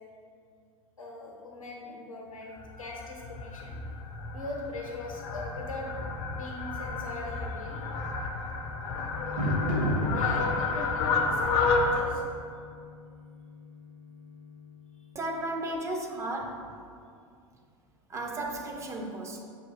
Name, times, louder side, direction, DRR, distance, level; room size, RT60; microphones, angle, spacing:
voice 1, 1.0-3.8 4.3-6.0 6.3-7.9 10.1-12.2, left 2 dB, 80° left, -1 dB, 0.7 m, -41 dB
Fowl, 2.6-12.0, left 4 dB, 45° left, 0.5 m, -31 dB
sound 1, 4.9-15.6, equal, 70° right, 1.5 m, -37 dB
voice 2, 15.1-16.8 18.1-19.4, right 1 dB, 15° right, 2 dB, 0.4 m, -34 dB
5.4 x 2.5 x 3.4 m, 2.3 s
figure-of-eight pair, 85°, 17 cm